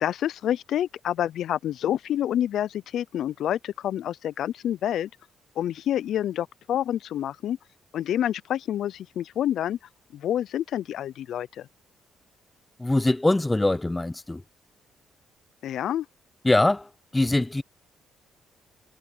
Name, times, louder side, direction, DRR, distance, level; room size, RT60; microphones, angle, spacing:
voice 1, 0.0-5.1 5.6-7.6 7.9-9.8 10.1-11.7 15.6-16.1, left 11 dB, 70° left, 0.4 m, -28 dB
voice 2, 12.8-14.4 16.4-17.6, left 2 dB, 15° left, 0.8 m, -23 dB
supercardioid pair, 60°, 0 cm